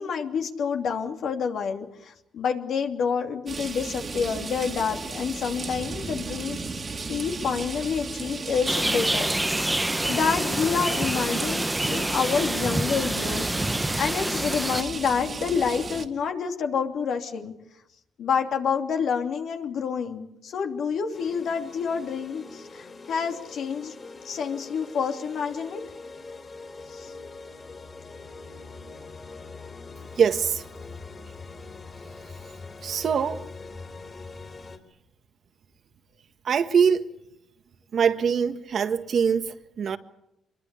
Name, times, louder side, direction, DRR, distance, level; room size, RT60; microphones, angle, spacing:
voice 1, 0.0-6.6 7.1-13.7 14.0-17.6 18.2-23.9 24.2-25.9 26.9-27.1, left 6 dB, 65° left, 2.8 m, -28 dB
sound 1, 3.5-16.1, right 4 dB, 40° right, 2.4 m, -35 dB
sound 2, 8.7-14.8, right 1 dB, 10° right, 1.1 m, -27 dB
sound 3, 21.1-34.8, left 3 dB, 35° left, 4.1 m, -43 dB
voice 2, 30.2-30.6 32.8-33.4 36.4-37.1 37.9-40.0, right 6 dB, 55° right, 1.6 m, -23 dB
25.5 x 22.0 x 8.4 m
cardioid pair, 90°, 0 cm